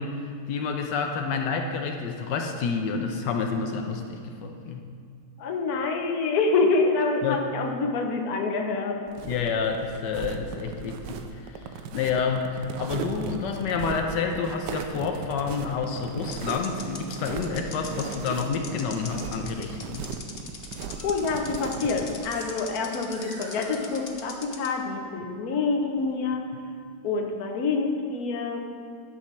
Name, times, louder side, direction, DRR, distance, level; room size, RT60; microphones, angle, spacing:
voice 1, 0.0-4.8 7.2-7.4 9.2-11.7 11.9-20.1, left 5 dB, 85° left, 4 dB, 1.4 m, -29 dB
voice 2, 5.4-9.0 21.0-26.4 27.0-28.7, left 4 dB, 60° left, 3 dB, 1.4 m, -26 dB
sound 1, 9.1-22.2, right 6 dB, 85° right, 1.3 m, -37 dB
sound 2, 16.3-24.7, left 5 dB, 45° left, 0.9 m, -41 dB
sound 3, 19.1-19.7 20.9-21.2 22.3-22.5 22.9-24.1, right 1 dB, 45° right, 2.4 m, -47 dB
11.5 x 5.6 x 6.0 m, 2.2 s
omnidirectional pair, 1.9 m